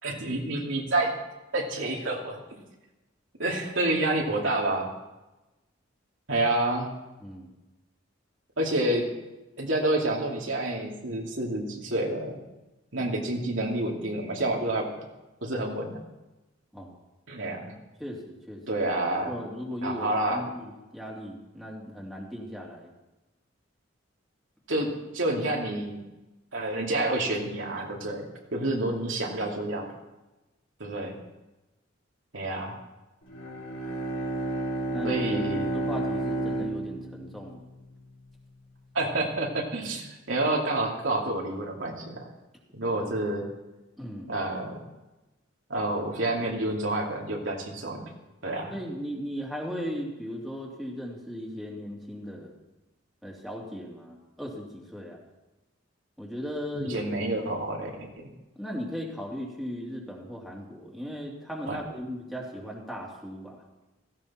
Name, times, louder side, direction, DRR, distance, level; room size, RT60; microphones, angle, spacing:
voice 1, 0.0-1.2 1.5-2.4 3.4-4.9 6.3-6.9 8.6-9.1 9.6-12.4 12.9-14.9 15.4-16.0 17.3-17.7 18.7-19.3 19.8-20.4 24.7-26.0 26.5-29.9 30.8-31.2 32.3-32.8 35.0-35.7 38.9-42.3 42.7-43.5 44.3-44.8 45.7-48.0 48.4-48.7 56.7-58.3 61.7-61.8, right 2 dB, 75° right, -1 dB, 2.8 m, -28 dB
voice 2, 7.2-7.5 16.7-16.9 18.0-18.6 19.2-22.9 34.9-35.2 35.7-37.6 44.0-44.3 48.7-52.5 53.2-55.2 56.2-57.0 57.3-57.4 58.5-63.6, equal, ahead, -3 dB, 2.9 m, -37 dB
Bowed string instrument, 33.2-38.0, right 2 dB, 75° left, 4.2 m, -31 dB
16.0 x 16.0 x 4.4 m, 1.0 s
head